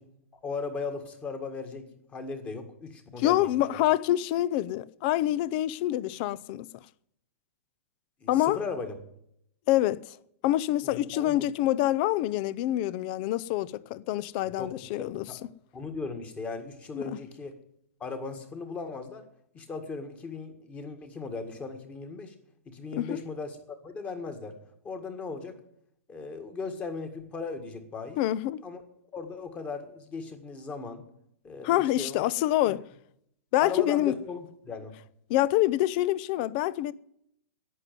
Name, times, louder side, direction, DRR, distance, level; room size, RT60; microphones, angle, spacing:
voice 1, 0.4-3.5 8.2-8.9 10.8-11.5 14.6-14.7 15.0-15.4 15.7-17.5 18.0-19.2 19.5-22.3 22.6-24.6 24.8-25.6 26.1-28.2 28.6-28.8 29.1-31.0 31.4-32.3 32.7-32.8 33.6-34.9, left 4 dB, 15° left, 1.8 m, -37 dB
voice 2, 3.2-6.7 8.3-8.6 9.7-10.2 10.4-15.3 16.9-17.2 22.9-23.2 28.2-28.6 31.6-32.8 33.5-34.2 35.3-36.9, left 14 dB, 35° left, 0.5 m, -26 dB
11.0 x 9.2 x 9.2 m
hypercardioid pair, 155°, 8 cm